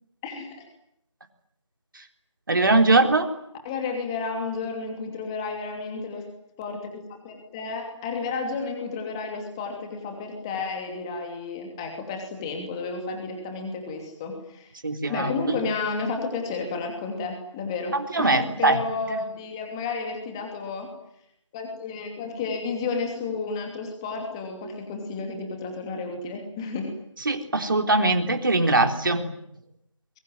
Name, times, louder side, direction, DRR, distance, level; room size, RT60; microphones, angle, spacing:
voice 1, 0.2-0.6 3.6-6.3 6.6-14.7 15.1-20.9 21.5-26.9, left 4 dB, 10° left, 3 dB, 2.8 m, -32 dB
voice 2, 2.5-3.3 14.8-15.6 17.9-18.8 19.1-19.2 27.3-29.3, right 2 dB, 40° right, 5 dB, 3.9 m, -21 dB
28.0 x 22.0 x 9.4 m, 0.75 s
figure-of-eight pair, 165°, 16 cm